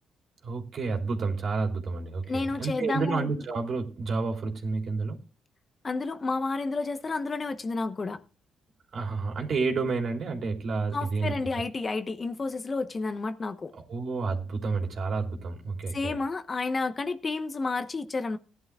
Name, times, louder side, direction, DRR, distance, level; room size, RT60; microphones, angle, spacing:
voice 1, 0.4-5.2 8.9-11.3 13.7-16.2, right 4 dB, 55° right, 3.2 m, -30 dB
voice 2, 2.3-3.3 5.8-8.2 10.9-13.7 15.9-18.4, left 3 dB, 35° left, 1.1 m, -30 dB
17.5 x 11.0 x 2.4 m
cardioid pair, 90°, 0 cm